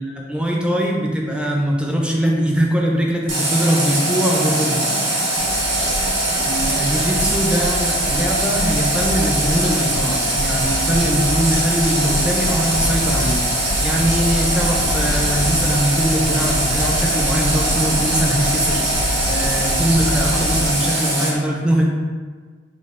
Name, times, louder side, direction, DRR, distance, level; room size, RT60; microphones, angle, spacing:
voice 1, 0.0-4.8 6.4-19.0 19.3-21.8, equal, 5° right, -1 dB, 0.4 m, -21 dB
Water tap faucet, 3.3-21.3, right 1 dB, 70° right, 1.2 m, -21 dB
sound 1, 5.4-20.7, left 1 dB, 85° left, 0.4 m, -27 dB
5.1 x 2.4 x 2.5 m, 1.5 s
head